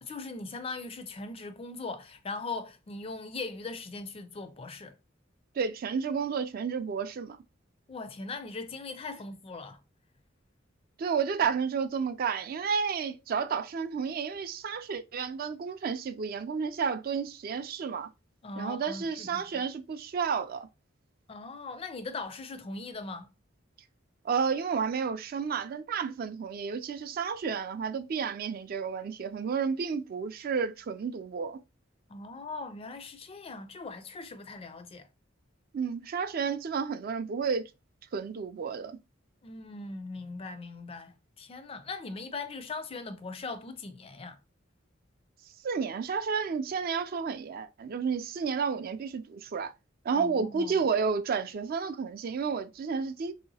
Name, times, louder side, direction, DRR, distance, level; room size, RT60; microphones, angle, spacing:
voice 1, 0.0-5.0 7.9-9.8 18.4-19.4 21.3-23.3 32.1-35.1 39.4-44.4 50.1-50.8, left 3 dB, 30° left, 0.4 m, -40 dB
voice 2, 5.6-7.4 11.0-18.1 18.6-20.7 24.2-31.6 35.7-37.7 38.1-39.0 45.6-49.7 50.0-53.3, right 6 dB, 50° right, 0.3 m, -31 dB
3.1 x 2.8 x 2.7 m
head